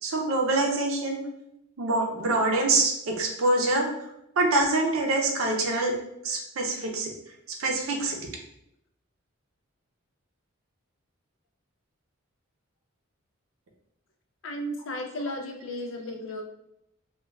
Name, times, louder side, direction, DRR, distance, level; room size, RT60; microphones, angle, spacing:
voice 1, 0.0-1.2 1.8-3.9 4.4-5.9 6.2-7.1 7.6-8.2, right 2 dB, 80° right, 1 dB, 0.6 m, -25 dB
voice 2, 14.4-16.4, left 1 dB, 65° left, 3 dB, 0.5 m, -34 dB
2.3 x 2.2 x 3.1 m, 0.80 s
head